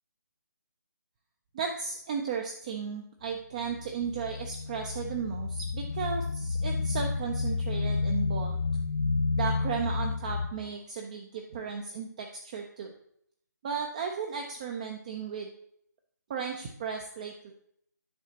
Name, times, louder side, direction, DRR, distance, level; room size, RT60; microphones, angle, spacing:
voice 1, 1.5-8.6 9.3-12.9 13.6-15.5 16.3-17.5, right 6 dB, 25° right, 3 dB, 0.5 m, -35 dB
sound 1, 3.6-10.5, left 4 dB, 40° left, 0.5 m, -30 dB
10.0 x 4.9 x 2.8 m, 0.69 s
figure-of-eight pair, 155°, 10 cm